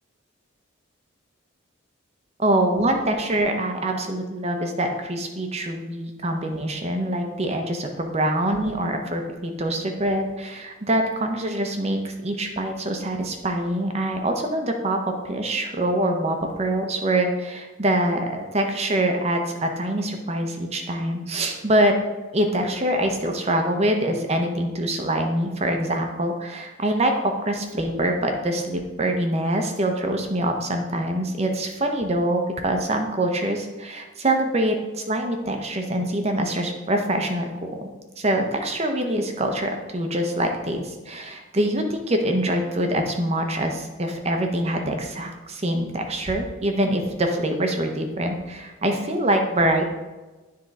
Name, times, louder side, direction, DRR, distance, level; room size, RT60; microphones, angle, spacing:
voice 1, 2.4-22.0 22.3-37.7 38.2-49.9, right 1 dB, 30° right, 4 dB, 0.7 m, -24 dB
10.0 x 3.8 x 4.1 m, 1.2 s
head